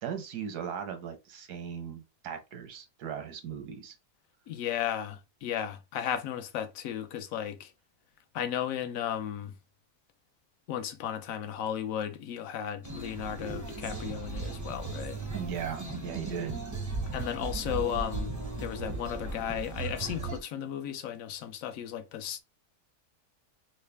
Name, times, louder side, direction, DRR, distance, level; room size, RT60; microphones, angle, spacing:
voice 1, 0.0-3.9 15.3-16.7, right 8 dB, 90° right, 1.4 m, -38 dB
voice 2, 4.5-7.7 8.3-9.6 10.7-15.2 17.1-22.4, left 10 dB, 70° left, 0.9 m, -35 dB
sound 1, 12.8-20.4, right 3 dB, 20° right, 0.4 m, -37 dB
4.0 x 2.1 x 3.2 m
omnidirectional pair, 1.6 m